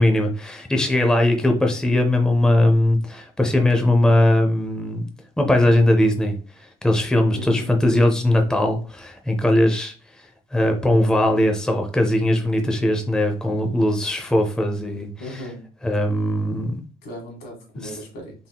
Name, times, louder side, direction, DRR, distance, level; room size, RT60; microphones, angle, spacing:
voice 1, 0.0-5.1 5.4-6.4 6.8-9.9 10.5-15.5 15.8-16.8 17.8-18.0, left 1 dB, 5° left, 3 dB, 0.6 m, -20 dB
voice 2, 7.3-7.7 15.2-15.6 17.0-18.3, left 1 dB, 75° left, 1 dB, 1.7 m, -36 dB
3.6 x 3.6 x 2.3 m, 0.39 s
cardioid pair, 110°, 17 cm